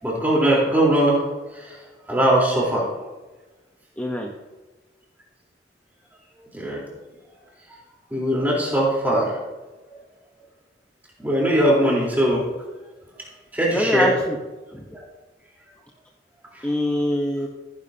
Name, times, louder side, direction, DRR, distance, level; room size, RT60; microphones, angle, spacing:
voice 1, 0.0-1.2 1.5-1.8 2.1-2.8 6.5-6.8 8.1-9.3 11.2-12.4 13.5-14.1 16.5-16.7, right 1 dB, 10° right, -5 dB, 3.7 m, -20 dB
voice 2, 4.0-4.3 13.7-14.4 14.7-14.8 16.6-17.5, left 1 dB, 10° left, 0 dB, 0.9 m, -24 dB
16.0 x 11.0 x 2.8 m, 1.2 s
head